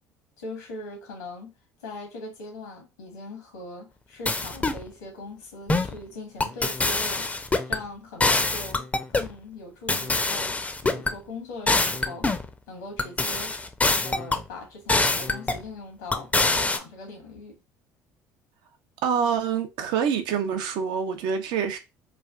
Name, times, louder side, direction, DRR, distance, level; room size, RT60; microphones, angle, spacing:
voice 1, 0.4-1.5 1.8-7.3 7.7-8.9 9.1-12.3 12.7-13.5 14.0-17.6, left 2 dB, 85° left, 1.2 m, -40 dB
sound 1, 4.3-4.8 5.7-6.0 6.4-7.8 8.2-9.3 9.9-11.1 11.7-12.5 13.0-14.4 14.9-15.6 16.1-16.8, left 3 dB, 15° left, 0.5 m, -24 dB
voice 2, 19.0-21.8, right 7 dB, 60° right, 0.6 m, -26 dB
3.2 x 2.4 x 2.3 m
hypercardioid pair, 60°, 9 cm